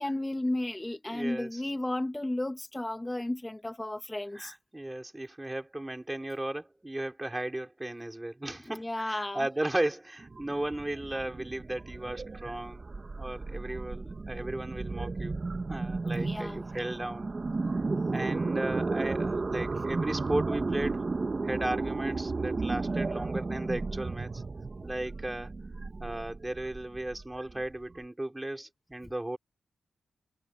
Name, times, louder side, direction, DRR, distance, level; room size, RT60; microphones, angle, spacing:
voice 1, 0.0-4.5 8.7-9.5 15.9-16.6, left 1 dB, 15° left, 2.1 m, -33 dB
voice 2, 1.1-1.6 4.3-15.4 15.7-17.3 17.7-17.8 18.1-21.0 21.4-24.4 24.8-25.6 26.0-29.4, right 1 dB, 15° right, 5.1 m, -35 dB
sound 1, 10.2-28.0, right 3 dB, 40° right, 1.5 m, -34 dB
cardioid pair, 70°, 0 cm